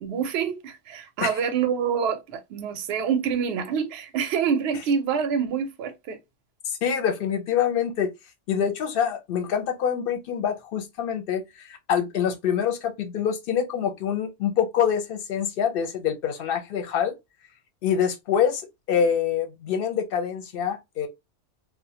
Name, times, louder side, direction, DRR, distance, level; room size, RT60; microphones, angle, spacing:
voice 1, 0.0-6.2, right 7 dB, 65° right, 0.8 m, -26 dB
voice 2, 6.7-8.1 8.5-17.1 17.8-18.6 18.9-21.1, left 8 dB, 60° left, 0.7 m, -25 dB
2.3 x 2.0 x 2.7 m
omnidirectional pair, 1.3 m